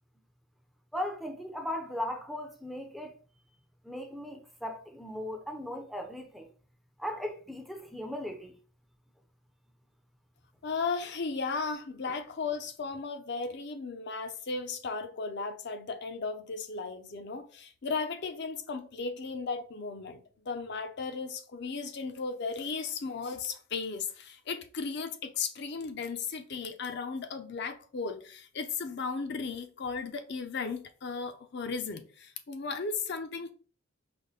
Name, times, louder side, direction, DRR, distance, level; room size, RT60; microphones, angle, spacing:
voice 1, 0.9-3.1 3.8-6.5 7.0-8.5 12.1-12.2, left 1 dB, ahead, 0.5 m, -37 dB
voice 2, 10.6-20.2 20.5-33.5, left 4 dB, 55° left, 0.6 m, -35 dB
5.0 x 2.1 x 3.9 m
head